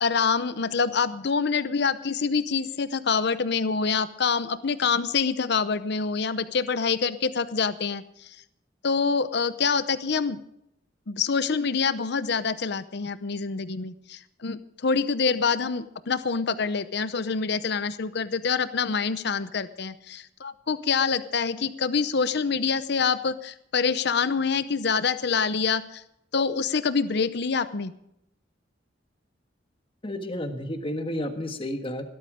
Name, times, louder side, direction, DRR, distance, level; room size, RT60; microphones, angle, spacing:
voice 1, 0.0-8.4 8.8-10.4 11.1-26.0 26.3-27.9, left 5 dB, 60° left, 13 dB, 0.7 m, -26 dB
voice 2, 30.0-32.0, left 1 dB, 30° left, 6 dB, 1.4 m, -31 dB
17.0 x 13.0 x 5.0 m, 0.78 s
head